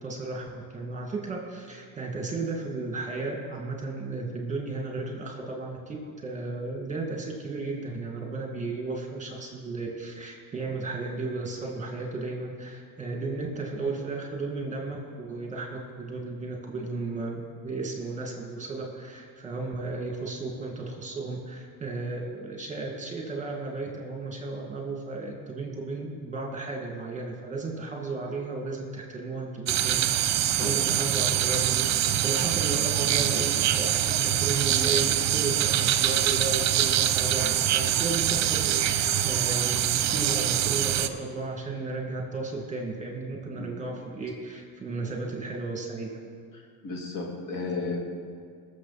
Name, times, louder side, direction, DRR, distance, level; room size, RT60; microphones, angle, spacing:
voice 1, 0.0-6.0 6.2-46.1, right 3 dB, 20° right, 0 dB, 2.3 m, -34 dB
sound 1, 29.7-41.1, right 11 dB, 45° right, 0.8 m, -24 dB
voice 2, 46.8-48.0, left 3 dB, 55° left, -1 dB, 2.7 m, -33 dB
20.0 x 7.2 x 4.3 m, 2.3 s
cardioid pair, 115°, 39 cm